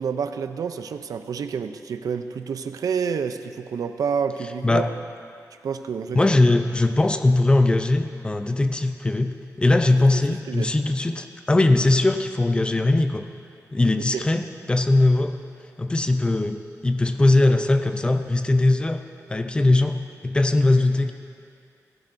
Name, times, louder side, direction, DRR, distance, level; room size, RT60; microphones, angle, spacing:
voice 1, 0.0-4.9 5.6-6.3 10.1-10.2 10.5-10.7 14.0-14.2, right 6 dB, 85° right, 9 dB, 0.5 m, -29 dB
voice 2, 6.1-13.2 13.7-15.4 15.8-19.0 19.3-21.1, left 2 dB, 15° left, 8 dB, 0.5 m, -20 dB
16.0 x 15.5 x 2.6 m, 2.4 s
wide cardioid pair, 175°, 6 cm